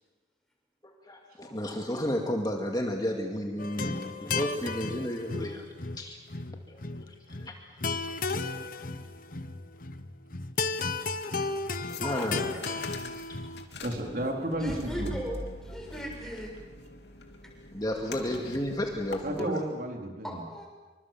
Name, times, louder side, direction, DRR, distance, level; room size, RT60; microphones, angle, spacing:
voice 1, 0.8-6.2 6.7-7.5 8.1-8.3 12.0-12.6 13.5-13.6 17.7-19.6, left 1 dB, 20° left, 1 dB, 2.3 m, -33 dB
sound 1, 3.6-13.7, left 3 dB, 50° left, 1.2 m, -34 dB
sound 2, 11.9-19.4, left 2 dB, 70° left, 3.1 m, -43 dB
voice 2, 12.0-13.1 14.6-16.5 20.2-20.7, equal, 5° left, 0 dB, 7.0 m, -39 dB
voice 3, 13.8-15.1 19.2-20.4, right 1 dB, 55° right, 1 dB, 4.1 m, -32 dB
27.0 x 25.0 x 7.6 m, 1.3 s
head